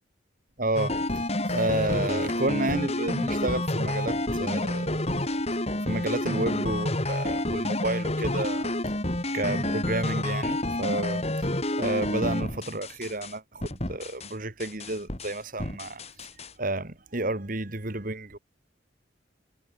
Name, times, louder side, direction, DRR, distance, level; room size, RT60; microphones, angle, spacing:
voice 1, 0.6-5.4 5.7-8.7 9.3-11.5 11.8-18.4, right 2 dB, 45° right, 2.3 m, -31 dB
sound 1, 0.8-13.3 13.6-14.3 14.6-16.5, left 1 dB, 35° left, 3.3 m, -29 dB
head